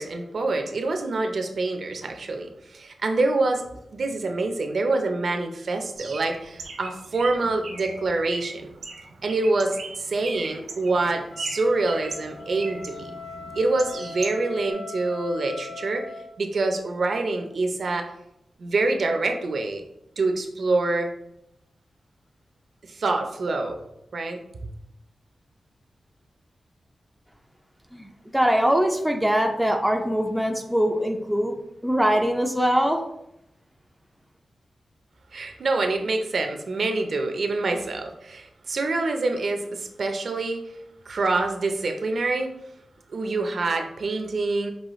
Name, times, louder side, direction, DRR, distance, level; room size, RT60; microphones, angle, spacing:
voice 1, 0.0-3.6 3.9-8.7 9.2-13.1 13.5-16.0 16.4-18.1 18.6-19.8 20.2-21.1 22.9-23.8 24.1-24.4 35.3-40.7 41.1-42.5 43.1-44.7, right 3 dB, 55° right, 5 dB, 0.5 m, -26 dB
Bird, 6.0-14.7, right 3 dB, 90° right, 0.7 m, -39 dB
Wind instrument woodwind instrument, 11.3-16.3, left 4 dB, 80° left, 0.9 m, -40 dB
voice 2, 27.9-31.5 31.8-33.0, equal, 5° right, 2 dB, 0.3 m, -22 dB
5.4 x 3.0 x 3.0 m, 0.83 s
wide cardioid pair, 155°, 0 cm